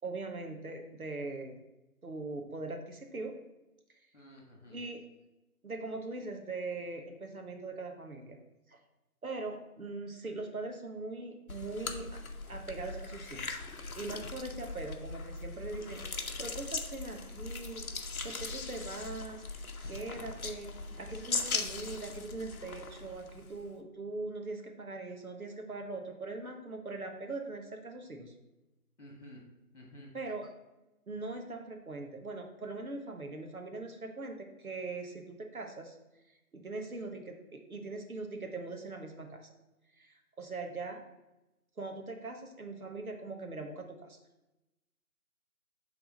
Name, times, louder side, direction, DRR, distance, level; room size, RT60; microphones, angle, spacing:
voice 1, 0.0-1.6 2.0-3.4 4.7-5.0 5.6-8.4 8.7-8.8 9.2-12.2 12.5-13.7 14.0-28.3 30.1-30.5 31.1-36.0 36.5-39.5 40.0-41.0 41.8-44.2, right 3 dB, 70° right, 3 dB, 1.1 m, -41 dB
voice 2, 4.1-4.8 19.8-19.9 29.0-29.5 29.7-30.1, left 1 dB, 50° left, -1 dB, 1.6 m, -52 dB
sound 1, 11.5-23.7, left 3 dB, 65° left, 0.8 m, -40 dB
8.0 x 3.6 x 3.9 m, 0.98 s
figure-of-eight pair, 180°, 45 cm